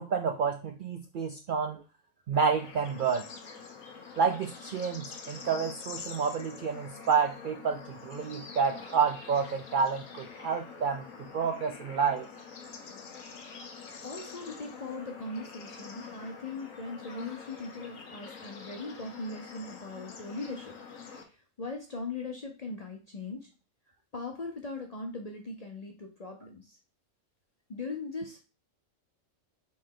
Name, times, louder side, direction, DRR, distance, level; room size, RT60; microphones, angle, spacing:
voice 1, 0.0-1.8 2.3-3.2 4.2-11.1 11.3-12.3, right 6 dB, 65° right, 4 dB, 0.5 m, -29 dB
Bird / Insect / Frog, 2.3-21.2, left 5 dB, 85° left, 1.3 m, -46 dB
voice 2, 14.0-20.7 21.6-23.5 24.1-26.8 27.7-28.4, left 3 dB, 45° left, 2 dB, 0.5 m, -39 dB
4.2 x 3.2 x 3.7 m, 0.33 s
omnidirectional pair, 1.3 m